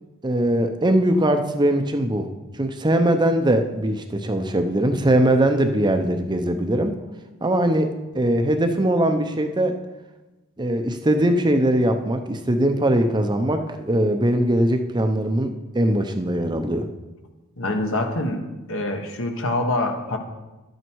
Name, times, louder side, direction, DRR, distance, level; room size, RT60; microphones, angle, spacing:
voice 1, 0.2-2.3 2.6-6.9 7.4-9.7 10.6-15.5 15.7-16.9, right 1 dB, 20° right, 6 dB, 0.6 m, -21 dB
voice 2, 17.6-18.4 18.7-20.2, left 2 dB, 60° left, 4 dB, 1.4 m, -25 dB
11.5 x 9.3 x 4.6 m, 1.1 s
head